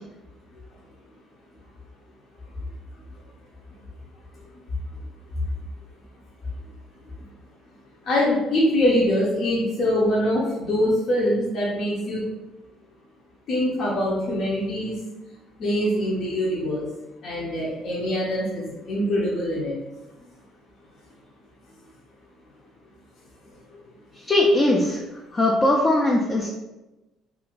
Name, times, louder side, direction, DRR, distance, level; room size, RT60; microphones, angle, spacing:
voice 1, 8.0-12.2 13.5-15.0 15.6-16.9 17.2-19.7 23.7-23.8, left 1 dB, 55° left, -6 dB, 0.7 m, -23 dB
voice 2, 24.2-25.0 25.3-26.5, left 1 dB, 25° left, -1 dB, 0.4 m, -20 dB
2.7 x 2.5 x 3.0 m, 1.0 s
cardioid pair, 105°, 0 cm